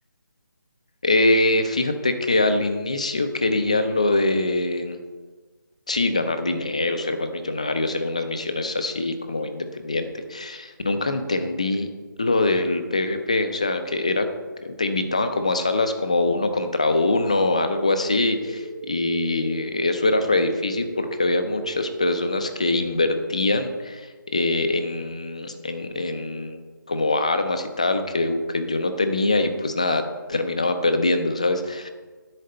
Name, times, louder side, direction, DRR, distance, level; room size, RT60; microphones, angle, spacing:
voice 1, 1.0-5.0 5.9-11.9 12.2-14.3 14.6-26.6 26.9-31.9, left 2 dB, 20° left, 8 dB, 0.4 m, -23 dB
sound 1, 17.1-23.5, right 2 dB, 30° right, 0.6 m, -38 dB
10.5 x 4.2 x 7.7 m, 1.4 s
figure-of-eight pair, 175°, 11 cm